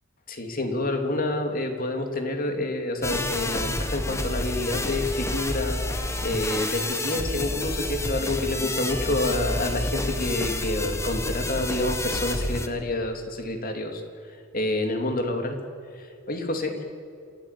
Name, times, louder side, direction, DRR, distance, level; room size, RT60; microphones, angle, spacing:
voice 1, 0.3-5.8 6.2-14.0 14.5-15.6 16.0-16.8, left 2 dB, 45° left, 5 dB, 3.0 m, -28 dB
sound 1, 3.0-12.7, left 1 dB, 15° left, 1.6 m, -29 dB
27.5 x 17.0 x 8.5 m, 2.4 s
head